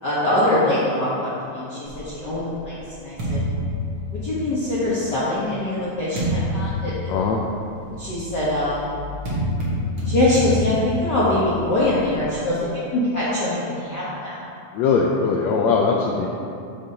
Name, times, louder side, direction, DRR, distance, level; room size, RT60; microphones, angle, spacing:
voice 1, 0.0-3.5 4.1-7.1 8.0-8.9 10.0-12.6 12.9-14.4, left 1 dB, 60° left, -10 dB, 1.1 m, -23 dB
sound 1, 1.9-4.7 5.4-12.4, equal, 50° right, 1.8 m, -28 dB
voice 2, 7.1-7.4 14.7-16.3, left 5 dB, 80° left, -2 dB, 1.6 m, -20 dB
12.0 x 5.4 x 2.8 m, 2.6 s
omnidirectional pair, 3.6 m